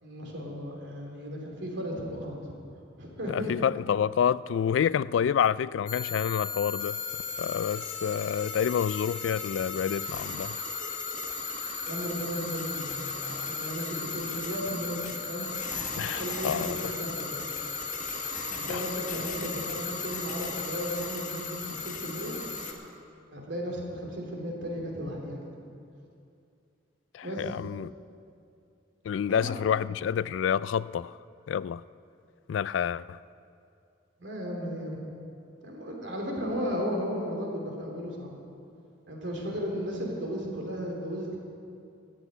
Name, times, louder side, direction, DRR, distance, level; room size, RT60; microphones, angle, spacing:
voice 1, 0.0-2.3 3.0-3.5 11.8-15.5 16.0-17.5 18.5-22.4 23.3-25.5 27.2-27.6 29.2-29.5 34.2-35.0 35.6-38.3 39.1-41.4, equal, 70° right, 3.0 m, -35 dB
voice 2, 3.3-7.0 7.4-10.6 15.9-16.8 18.7-18.8 27.1-27.9 29.0-31.2 31.5-31.8 32.5-33.2, left 8 dB, 80° left, 0.3 m, -28 dB
sound 1, 5.9-22.7, left 4 dB, 40° left, 1.5 m, -35 dB
13.5 x 8.3 x 9.3 m
head